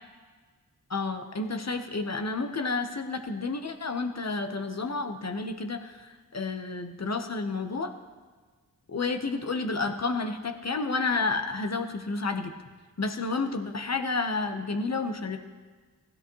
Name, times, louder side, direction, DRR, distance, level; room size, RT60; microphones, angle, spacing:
voice 1, 0.9-7.9 8.9-12.5 13.0-15.4, left 3 dB, 50° left, 6 dB, 1.2 m, -30 dB
16.0 x 12.0 x 3.2 m, 1.4 s
cardioid pair, 45°, 35 cm